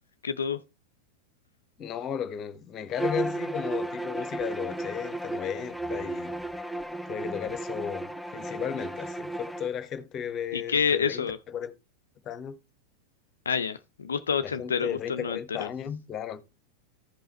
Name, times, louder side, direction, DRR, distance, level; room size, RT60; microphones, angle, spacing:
voice 1, 0.2-0.6 10.5-11.4 13.5-15.7, left 6 dB, 70° left, 0.5 m, -28 dB
voice 2, 1.8-6.6 7.1-11.7 12.2-12.5 14.4-16.4, left 8 dB, 30° left, 1.2 m, -35 dB
Bowed string instrument, 2.9-9.7, right 1 dB, ahead, 0.5 m, -34 dB
14.5 x 5.5 x 3.0 m
figure-of-eight pair, 90°, 0 cm